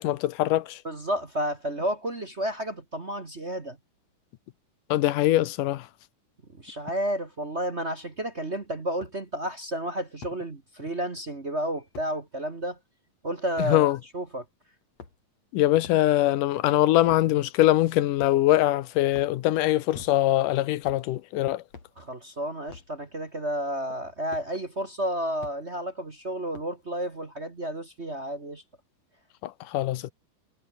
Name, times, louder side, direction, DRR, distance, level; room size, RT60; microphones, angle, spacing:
voice 1, 0.0-0.8 4.9-5.9 13.7-14.0 15.5-21.6 29.4-30.1, left 15 dB, 90° left, 2.5 m, -23 dB
voice 2, 0.8-3.8 6.6-12.8 13.2-13.9 14.1-14.4 22.0-28.6, right 1 dB, 30° right, 1.5 m, -31 dB
sound 1, 8.0-8.1 9.0-9.2 10.2-10.4 11.9-12.1 13.6-13.7 14.8-15.4 15.8-16.1 17.0-17.3 18.2-18.6 19.1-19.4 19.9-20.4 20.8-21.1 21.7-22.0 22.7-22.9 24.3-24.5 25.4-25.6 26.5-26.8, left 5 dB, 55° left, 5.0 m, -45 dB
omnidirectional pair, 3.7 m